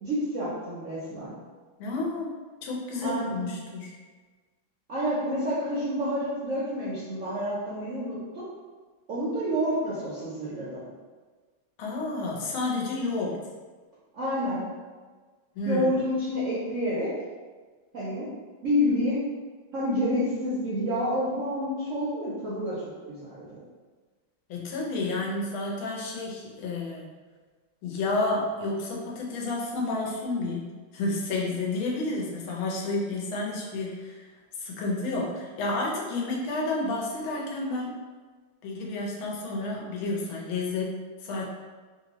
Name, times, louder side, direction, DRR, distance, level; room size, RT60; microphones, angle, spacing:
voice 1, 0.0-1.3 3.0-3.5 4.9-8.4 9.1-10.8 14.1-14.6 15.6-17.1 17.9-18.3 18.6-19.2 19.7-22.7 23.1-23.6, equal, 65° right, -9 dB, 0.8 m, -28 dB
voice 2, 1.8-2.4 2.6-3.9 11.8-13.4 15.5-15.9 24.5-27.1 27.8-34.3 34.6-37.9 38.6-41.4, left 2 dB, 80° left, -2 dB, 1.5 m, -30 dB
3.3 x 2.7 x 2.9 m, 1.4 s
omnidirectional pair, 2.2 m